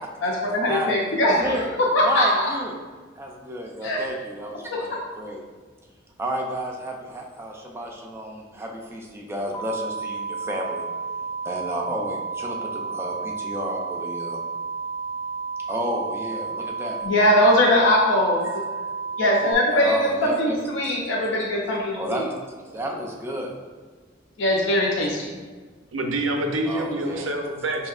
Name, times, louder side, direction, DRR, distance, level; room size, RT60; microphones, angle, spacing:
voice 1, 0.2-2.3 3.8-4.0 17.0-18.4 19.2-22.0 24.4-25.3, left 1 dB, 70° left, -3 dB, 0.5 m, -21 dB
voice 2, 2.0-2.8 3.2-5.4 6.2-10.8 11.4-14.4 15.7-17.0 19.7-20.6 22.0-22.3 22.6-23.5 26.6-27.3, right 1 dB, 15° right, 0 dB, 0.4 m, -31 dB
sound 1, 9.5-19.5, right 5 dB, 30° left, 0.6 m, -32 dB
voice 3, 25.9-27.9, right 1 dB, 90° right, 3 dB, 0.5 m, -26 dB
5.0 x 2.7 x 2.4 m, 1.4 s
head